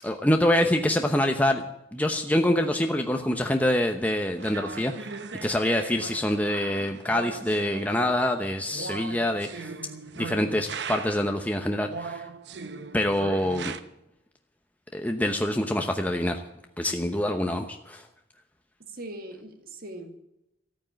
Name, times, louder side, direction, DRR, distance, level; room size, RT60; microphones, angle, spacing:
voice 1, 0.0-1.6 1.9-5.1 5.4-9.7 10.2-12.3 12.9-13.7 14.9-16.4 16.8-18.0, left 1 dB, 10° left, 0.9 m, -25 dB
sound 1, 4.4-11.4 11.9-13.8, right 4 dB, 65° right, 0.9 m, -39 dB
voice 2, 18.9-20.2, right 1 dB, 50° right, 2.2 m, -40 dB
14.0 x 9.2 x 8.8 m
head